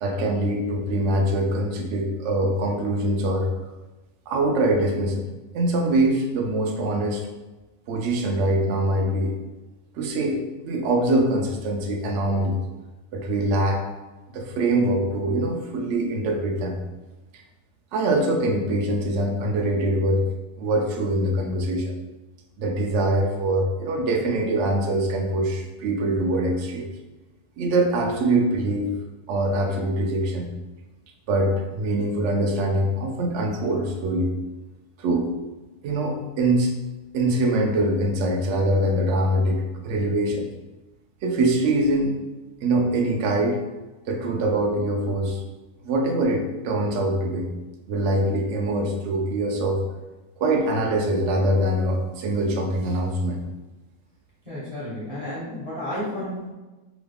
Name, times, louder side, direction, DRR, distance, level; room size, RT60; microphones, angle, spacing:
voice 1, 0.0-3.5 4.3-5.3 5.5-7.2 7.9-9.4 9.9-12.6 13.1-13.8 14.3-16.8 17.9-20.2 20.6-21.9 22.6-26.9 27.6-28.9 29.3-30.5 31.3-34.3 35.0-35.3 35.8-36.7 37.1-40.5 41.2-42.2 42.6-43.6 44.1-45.4 45.8-47.5 47.9-49.9 50.4-53.4, right 1 dB, 70° right, 2 dB, 0.7 m, -23 dB
voice 2, 54.4-56.5, left 1 dB, 25° right, -10 dB, 1.1 m, -32 dB
3.0 x 2.4 x 3.3 m, 1.1 s
omnidirectional pair, 1.7 m